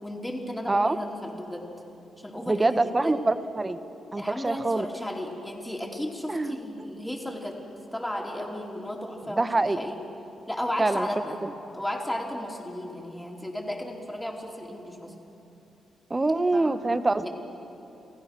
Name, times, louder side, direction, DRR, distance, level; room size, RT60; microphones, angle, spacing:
voice 1, 0.0-1.7 2.2-3.2 4.1-7.6 7.9-10.0 10.5-11.4 11.7-15.1 16.5-16.8 17.2-17.3, left 1 dB, 10° left, -1 dB, 4.2 m, -34 dB
voice 2, 2.5-3.8 4.1-4.9 6.3-6.6 9.4-9.8 10.8-11.1 11.4-11.5 16.1-17.2, right 2 dB, 25° right, 12 dB, 1.1 m, -25 dB
29.0 x 15.5 x 6.2 m, 2.8 s
hypercardioid pair, 45°, 0 cm